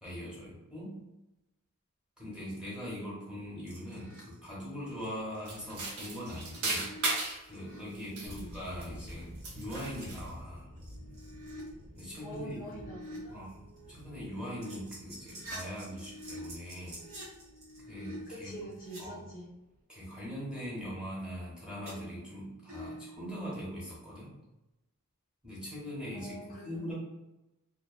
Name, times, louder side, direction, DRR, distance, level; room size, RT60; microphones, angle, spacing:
voice 1, 0.0-1.0 2.2-6.9 7.5-10.7 11.9-12.9 13.3-13.6 13.9-17.0 17.9-18.6 19.0-19.3 19.9-24.3 25.4-26.3 26.6-26.9, equal, 5° right, -7 dB, 0.9 m, -41 dB
sound 1, 3.7-4.3 4.7-5.0 5.3-5.4 6.0-7.8 8.4-8.5 8.8-8.9 9.1-11.7 12.0-13.2 13.5-19.0 21.9-22.4 22.7-23.2, equal, 65° right, 0.9 m, -48 dB
sound 2, 5.4-7.4 8.0-9.1 9.4-10.3, right 2 dB, 80° right, 0.6 m, -36 dB
voice 2, 8.1-8.6 12.2-13.6 18.3-19.5 26.1-26.9, right 1 dB, 40° left, -4 dB, 0.5 m, -45 dB
sound 3, 8.2-19.8, equal, 40° right, 0.5 m, -51 dB
2.4 x 2.3 x 2.3 m, 0.98 s
head